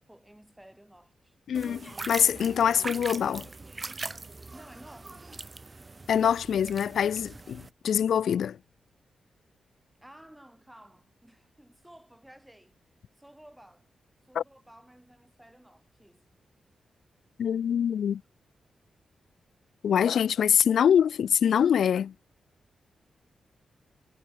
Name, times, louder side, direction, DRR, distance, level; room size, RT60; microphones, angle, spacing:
voice 1, 0.0-1.4 4.5-5.3 10.0-12.8 13.2-13.9 14.3-16.4, right 1 dB, 5° right, 4.0 m, -54 dB
voice 2, 1.5-3.5 6.1-8.6 14.4-14.5 17.4-18.2 19.8-22.1, left 8 dB, 70° left, 0.5 m, -24 dB
sound 1, 1.5-7.7, right 3 dB, 20° right, 2.2 m, -41 dB
wide cardioid pair, 170°, 0 cm